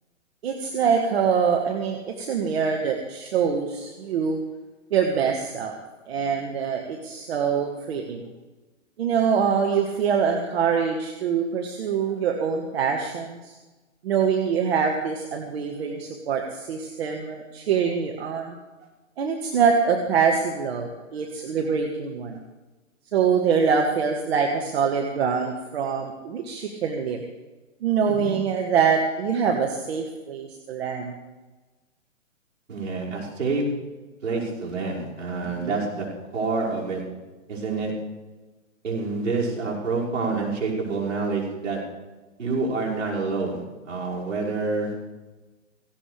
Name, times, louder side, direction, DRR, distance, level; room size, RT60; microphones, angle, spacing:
voice 1, 0.4-4.4 4.9-5.7 6.1-8.2 9.0-13.5 14.0-18.6 19.2-22.4 23.1-27.2 27.8-31.1 35.4-35.9, right 6 dB, 50° right, 3 dB, 1.7 m, -24 dB
voice 2, 28.0-28.3 32.7-33.6 34.2-36.1 36.3-37.0 37.5-37.9 38.8-41.8 42.4-44.9, right 4 dB, 75° right, -5 dB, 5.9 m, -27 dB
17.5 x 17.0 x 3.4 m, 1.2 s
hypercardioid pair, 130°, 39 cm